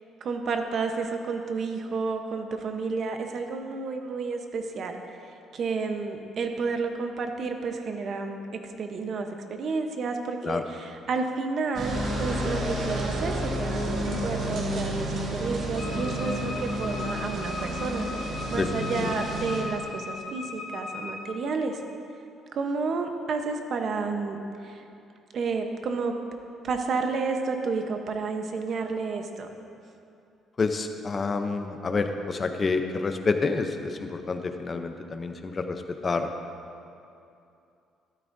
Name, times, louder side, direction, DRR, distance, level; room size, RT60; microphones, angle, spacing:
voice 1, 0.2-5.0 5.2-21.8 22.5-24.8 25.3-26.2 26.6-29.5, right 4 dB, 45° right, 5 dB, 0.8 m, -31 dB
sound 1, 11.7-19.6, right 1 dB, 60° right, 2.4 m, -30 dB
Wind instrument woodwind instrument, 15.8-21.3, left 3 dB, 50° left, 1.5 m, -38 dB
voice 2, 18.6-19.1 30.6-36.3, left 4 dB, 25° left, 6 dB, 0.6 m, -28 dB
12.5 x 12.5 x 2.6 m, 2.6 s
cardioid pair, 155°, 0 cm